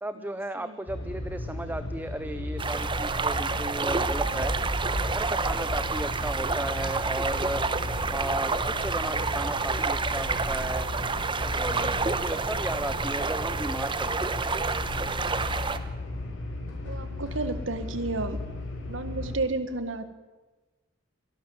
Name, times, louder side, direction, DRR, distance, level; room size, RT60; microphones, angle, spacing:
voice 1, 0.0-4.5 5.1-7.7 8.1-10.9 11.4-14.5 14.9-15.1, right 1 dB, 10° right, 11 dB, 0.6 m, -35 dB
sound 1, 0.9-19.3, left 1 dB, 75° left, 5.9 m, -36 dB
sound 2, 2.6-15.8, right 4 dB, 25° right, 1.0 m, -29 dB
sound 3, 3.9-10.7, equal, 65° right, 5.9 m, -37 dB
voice 2, 16.8-18.4 18.9-20.0, right 3 dB, 80° right, 11 dB, 1.7 m, -31 dB
23.5 x 12.0 x 9.6 m, 1.2 s
head